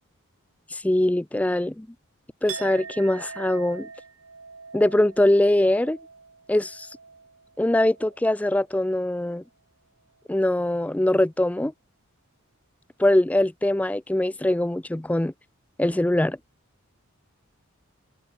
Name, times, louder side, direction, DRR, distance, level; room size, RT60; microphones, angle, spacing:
voice 1, 0.7-1.9 2.4-3.9 4.7-6.0 6.5-6.9 7.6-9.4 10.3-11.7 13.0-15.3 15.8-16.4, left 1 dB, 5° left, 0.3 m, -22 dB
Chink clink, 2.5-8.4 8.7-9.1, right 6 dB, 80° right, 3.7 m, -42 dB
head